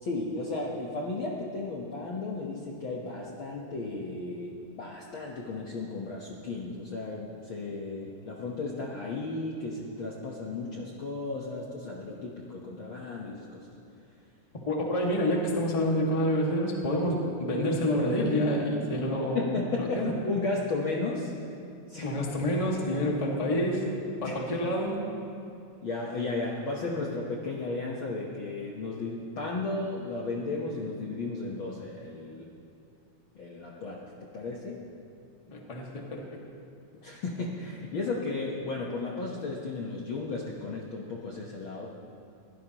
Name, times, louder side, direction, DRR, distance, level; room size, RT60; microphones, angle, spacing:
voice 1, 0.0-13.7 18.8-18.9 19.3-21.3 21.9-22.1 24.2-24.4 25.8-32.5 33.3-34.9 37.0-41.9, left 3 dB, 55° left, -3 dB, 1.6 m, -34 dB
voice 2, 14.7-19.5 19.8-20.1 22.0-23.9 24.2-25.0 35.5-36.2, equal, 15° left, -2 dB, 1.4 m, -28 dB
22.5 x 16.5 x 3.0 m, 2.5 s
omnidirectional pair, 3.4 m